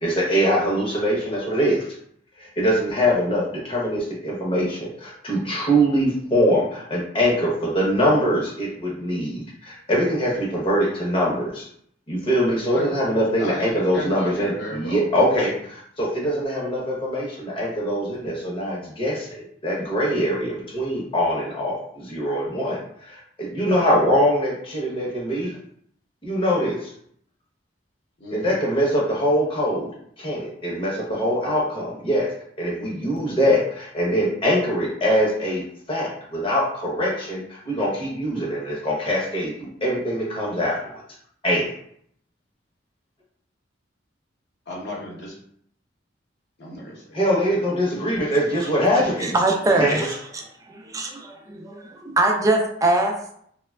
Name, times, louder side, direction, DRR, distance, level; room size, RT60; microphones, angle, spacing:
voice 1, 0.0-1.9 2.4-11.7 12.1-25.5 26.2-26.9 28.3-29.9 30.2-32.3 32.6-35.6 35.9-41.0 41.4-41.7 47.1-49.3 49.7-50.0, equal, 30° left, -3 dB, 0.8 m, -23 dB
voice 2, 13.4-15.0 28.2-28.6 44.7-45.3 46.6-47.2, left 1 dB, 65° left, -3 dB, 0.9 m, -33 dB
voice 3, 49.3-50.2 50.7-53.3, right 2 dB, 20° right, 1 dB, 0.4 m, -22 dB
3.1 x 2.2 x 2.2 m, 0.66 s
head